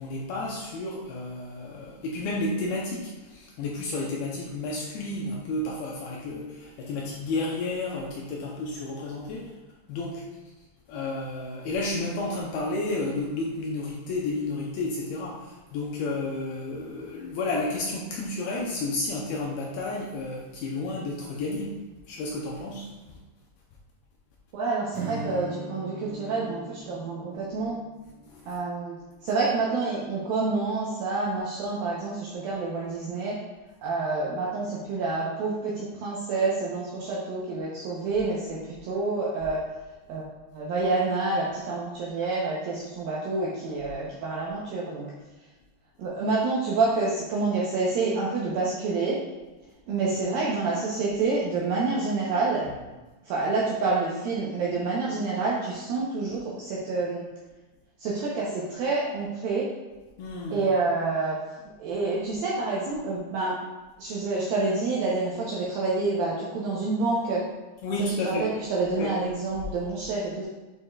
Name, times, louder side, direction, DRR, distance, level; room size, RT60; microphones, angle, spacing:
voice 1, 0.0-9.5 9.9-10.2 10.9-21.7 22.1-23.2 28.3-28.5 60.2-60.7 67.8-68.5 68.9-69.1, left 2 dB, 85° left, -2 dB, 2.2 m, -31 dB
voice 2, 24.5-27.8 28.5-29.0 29.2-33.4 33.8-39.6 40.1-40.2 40.5-45.1 46.0-49.2 49.9-52.7 53.3-57.2 58.0-59.7 60.5-61.4 61.8-63.6 64.0-67.4 68.2-70.5, right 3 dB, 80° right, -5 dB, 2.1 m, -28 dB
Acoustic guitar / Strum, 24.9-28.8, right 2 dB, 65° right, 1.7 m, -40 dB
8.7 x 5.5 x 2.3 m, 1.2 s
omnidirectional pair, 5.3 m